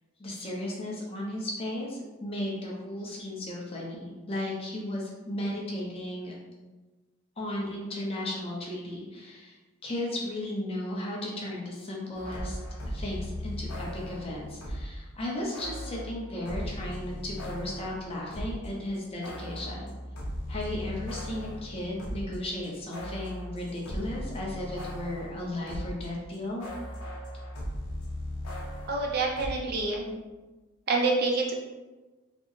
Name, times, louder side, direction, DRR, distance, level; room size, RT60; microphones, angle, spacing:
voice 1, 0.2-6.4 7.4-9.6 9.8-12.6 12.9-19.9 20.5-26.7, left 1 dB, 25° left, -3 dB, 0.6 m, -35 dB
sound 1, 12.1-15.0 15.5-18.7 18.9-26.1 26.3-29.5, equal, 85° left, 0.6 m, -38 dB
voice 2, 28.9-30.1 30.9-31.6, right 3 dB, 45° right, 0 dB, 0.4 m, -27 dB
4.1 x 2.0 x 3.1 m, 1.2 s
head